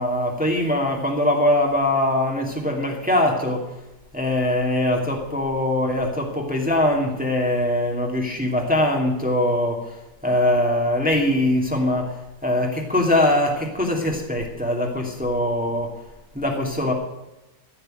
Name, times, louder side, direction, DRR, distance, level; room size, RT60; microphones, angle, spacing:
voice 1, 0.0-3.6 4.1-9.9 10.2-12.1 12.4-15.9 16.3-16.9, left 1 dB, 5° right, 0 dB, 2.4 m, -22 dB
15.0 x 6.8 x 9.0 m, 0.97 s
omnidirectional pair, 1.9 m